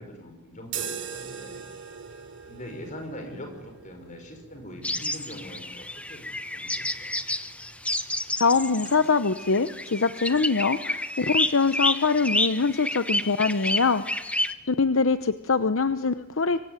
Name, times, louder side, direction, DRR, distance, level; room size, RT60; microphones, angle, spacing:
voice 1, 0.0-1.7 2.5-7.2 14.6-14.9, left 1 dB, 35° left, 5 dB, 5.9 m, -42 dB
sound 1, 0.6-8.4, right 7 dB, 55° right, 3.0 m, -42 dB
sound 2, 4.8-14.5, left 1 dB, 5° left, 1.1 m, -29 dB
voice 2, 8.4-14.0 14.7-16.6, left 4 dB, 65° left, 11 dB, 0.8 m, -23 dB
25.0 x 24.0 x 9.6 m, 1.2 s
head